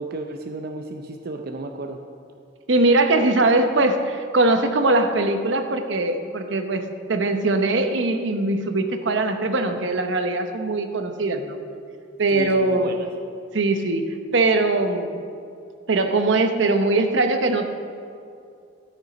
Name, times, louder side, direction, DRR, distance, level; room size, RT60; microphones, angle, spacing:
voice 1, 0.0-2.0 12.3-13.1, right 2 dB, 55° right, 4 dB, 0.6 m, -33 dB
voice 2, 2.7-11.6 12.2-12.9 13.5-14.0 14.3-15.1 15.9-17.6, right 2 dB, 85° right, 7 dB, 0.8 m, -21 dB
13.0 x 6.6 x 5.2 m, 2.4 s
head